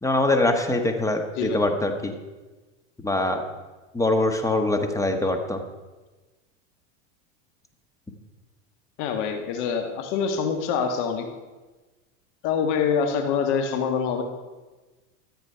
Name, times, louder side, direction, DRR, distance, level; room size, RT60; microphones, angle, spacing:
voice 1, 0.0-2.1 3.0-3.4 3.9-5.6, left 2 dB, 10° left, 5 dB, 1.3 m, -23 dB
voice 2, 9.0-11.2 12.4-14.2, left 6 dB, 60° left, 5 dB, 1.6 m, -25 dB
13.0 x 7.9 x 5.6 m, 1.2 s
supercardioid pair, 110°, 37 cm